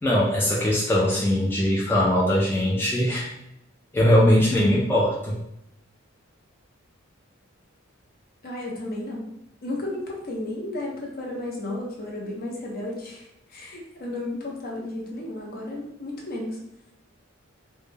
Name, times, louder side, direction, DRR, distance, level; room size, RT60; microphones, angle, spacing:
voice 1, 0.0-3.2 3.9-5.3, left 1 dB, 10° left, -5 dB, 0.3 m, -21 dB
voice 2, 8.4-9.2 9.6-16.6, left 1 dB, 45° left, -2 dB, 0.6 m, -33 dB
2.1 x 2.1 x 3.2 m, 0.83 s
head